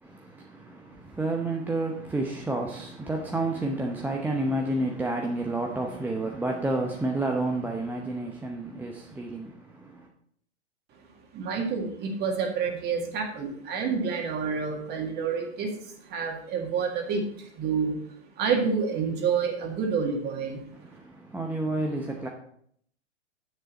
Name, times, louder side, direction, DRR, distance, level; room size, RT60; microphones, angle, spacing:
voice 1, 0.0-10.1 20.7-22.3, right 2 dB, 5° right, 0.7 m, -30 dB
voice 2, 11.3-18.0 18.4-20.6, right 5 dB, 30° right, 1.9 m, -28 dB
9.5 x 7.8 x 4.1 m
figure-of-eight pair, 110°, 35 cm